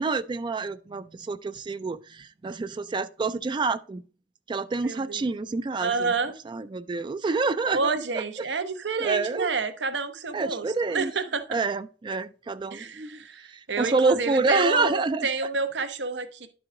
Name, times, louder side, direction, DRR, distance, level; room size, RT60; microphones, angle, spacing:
voice 1, 0.0-4.0 4.5-6.1 6.5-8.5 9.0-9.5 10.3-11.1 11.5-15.3, right 4 dB, 25° right, 0.3 m, -28 dB
voice 2, 4.8-5.2 5.8-6.3 7.6-10.6 10.9-11.6 12.7-16.5, right 4 dB, 80° right, 0.9 m, -29 dB
11.0 x 4.8 x 3.7 m
head